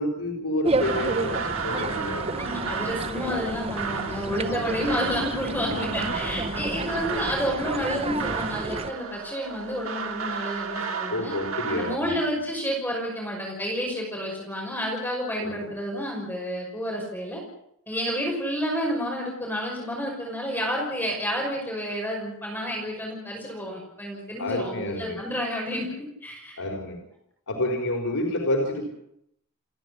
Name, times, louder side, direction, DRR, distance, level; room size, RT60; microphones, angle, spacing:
voice 1, 0.0-3.2 4.4-4.9 5.7-6.6 11.1-12.1 15.4-15.7 24.4-25.2 26.6-27.0 27.5-28.9, left 1 dB, 80° left, 2 dB, 4.6 m, -30 dB
sound 1, 0.6-8.9, right 3 dB, 25° right, 0.8 m, -31 dB
sound 2, 0.8-12.0, right 5 dB, 65° right, 2.1 m, -33 dB
voice 2, 2.4-11.3 11.7-17.4 17.9-25.9 26.2-26.6, equal, 10° left, -2 dB, 6.0 m, -30 dB
30.0 x 11.0 x 9.9 m, 0.76 s
head